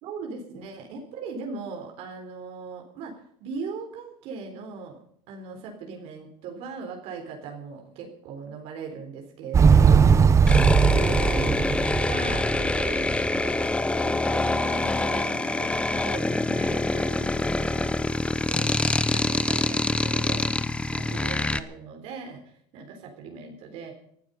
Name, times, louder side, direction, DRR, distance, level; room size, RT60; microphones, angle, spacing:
voice 1, 0.0-3.1 3.4-5.0 5.3-10.2 10.8-11.7 12.1-18.7 19.1-23.9, right 5 dB, 70° right, 2 dB, 3.8 m, -39 dB
Motorcycle, 9.5-13.5, right 6 dB, 25° right, 1.0 m, -19 dB
sound 1, 10.5-21.6, left 2 dB, 10° left, 0.9 m, -25 dB
19.5 x 12.0 x 5.4 m, 0.66 s
cardioid pair, 120°, 11 cm